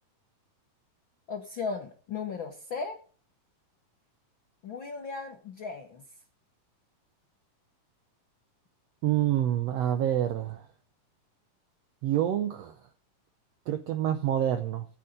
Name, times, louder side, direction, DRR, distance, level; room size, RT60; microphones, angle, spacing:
voice 1, 1.3-3.0 4.6-6.0, left 5 dB, 60° left, 3 dB, 1.3 m, -36 dB
voice 2, 9.0-10.6 12.0-12.8 13.7-14.9, right 11 dB, 80° right, 9 dB, 1.5 m, -27 dB
13.5 x 7.3 x 5.1 m, 0.42 s
omnidirectional pair, 3.9 m